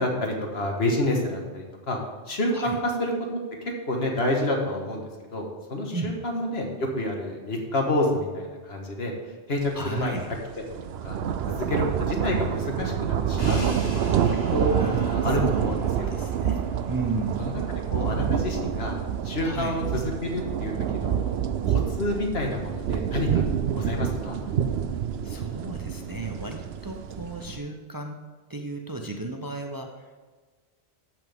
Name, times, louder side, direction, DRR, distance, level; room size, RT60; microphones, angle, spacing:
voice 1, 0.0-2.0 2.3-3.4 3.8-9.1 9.5-10.4 10.8-11.2 11.5-16.1 17.4-17.6 17.9-19.0 19.2-21.4 21.6-23.3 23.9-24.4, left 1 dB, 70° left, 1 dB, 1.7 m, -29 dB
voice 2, 9.7-10.3 14.7-17.4 19.4-19.8 23.3-23.5 25.2-28.2 28.5-30.2, right 3 dB, 25° right, 3 dB, 0.5 m, -34 dB
sound 1, 9.8-9.9 10.3-27.6, right 9 dB, 75° right, 0.8 m, -27 dB
Crash cymbal, 13.4-19.3, equal, 40° left, 2.9 m, -43 dB
14.0 x 6.1 x 3.5 m, 1.4 s
omnidirectional pair, 1.1 m